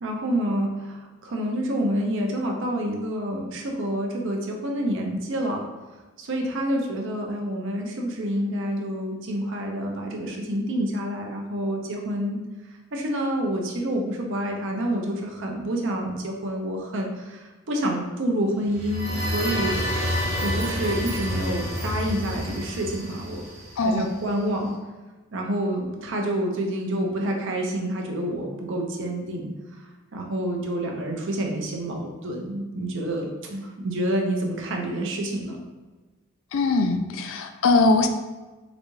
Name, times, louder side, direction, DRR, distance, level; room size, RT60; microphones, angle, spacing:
voice 1, 0.0-5.6 6.2-12.4 12.9-19.7 20.4-23.4 23.8-24.7 25.3-29.5 30.1-35.6, right 1 dB, 55° right, 1 dB, 0.6 m, -28 dB
sound 1, 18.6-24.4, equal, 35° right, 1.0 m, -29 dB
voice 2, 23.8-24.2 36.5-38.1, left 3 dB, 60° left, 7 dB, 0.3 m, -21 dB
3.9 x 2.2 x 3.1 m, 1.2 s
head